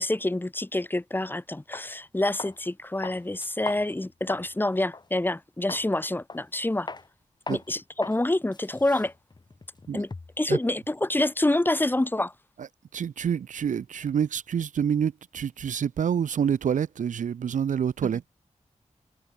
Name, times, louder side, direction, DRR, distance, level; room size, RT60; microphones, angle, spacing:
voice 1, 0.0-6.9 7.5-9.1 9.9-10.1 10.4-12.3, left 1 dB, 15° left, 1.5 m, -27 dB
sound 1, 1.7-1.9 2.4-2.7 3.0-4.5 4.9-5.1 5.7-5.9 6.3-6.6 6.9-7.1 7.5-7.7 8.0-8.2 8.5-10.4, left 3 dB, 35° left, 2.5 m, -39 dB
voice 2, 12.9-18.3, right 8 dB, 85° right, 0.6 m, -27 dB
wide cardioid pair, 115°, 13 cm